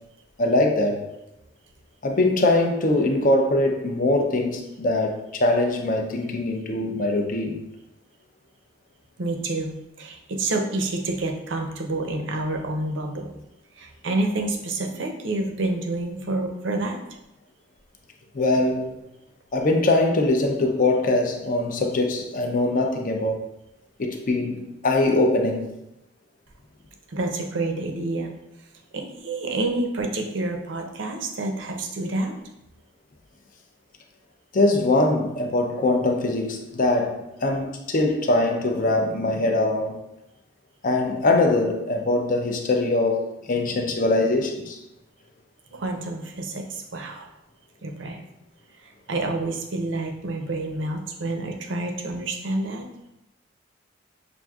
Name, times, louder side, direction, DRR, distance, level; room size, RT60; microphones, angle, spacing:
voice 1, 0.4-1.0 2.0-7.6 18.3-19.0 19.5-23.3 24.0-25.7 34.5-40.0 40.8-44.8, left 2 dB, 40° left, 3 dB, 0.5 m, -22 dB
voice 2, 9.2-13.3 13.8-17.0 27.1-28.3 28.9-32.3 45.7-47.3 47.8-48.2 48.8-52.9, right 2 dB, 60° right, 3 dB, 0.6 m, -28 dB
5.9 x 2.6 x 2.3 m, 0.89 s
head